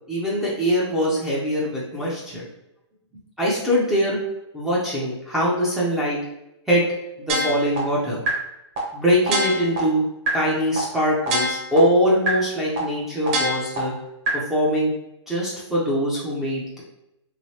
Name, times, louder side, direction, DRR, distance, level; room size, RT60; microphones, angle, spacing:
voice 1, 0.1-2.5 3.4-4.2 4.5-6.2 6.7-6.8 7.2-8.2 8.9-10.0 10.3-13.9 14.3-14.9 15.3-16.8, equal, ahead, -7 dB, 0.4 m, -22 dB
sound 1, 7.3-7.8 8.3-8.4 8.8-8.9 9.3-9.8 10.3-10.4 10.8-10.9 11.3-11.8 12.3-12.4 12.8-12.9 13.3-13.8 14.3-14.4, right 1 dB, 30° right, 0.8 m, -23 dB
3.2 x 2.9 x 2.7 m, 0.87 s
hypercardioid pair, 165°, 15 cm